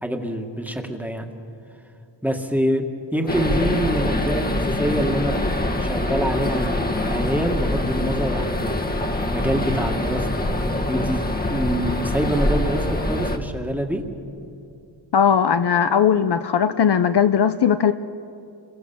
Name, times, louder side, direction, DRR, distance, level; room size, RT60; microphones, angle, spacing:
voice 1, 0.0-1.3 2.2-2.8 3.1-8.8 9.3-11.2 11.5-14.0, right 1 dB, 5° right, 3 dB, 2.0 m, -26 dB
sound 1, 3.3-13.4, left 1 dB, 20° left, 1.6 m, -24 dB
voice 2, 15.1-17.9, left 8 dB, 55° left, 10 dB, 0.8 m, -18 dB
30.0 x 22.5 x 7.1 m, 2.6 s
wide cardioid pair, 140°, 47 cm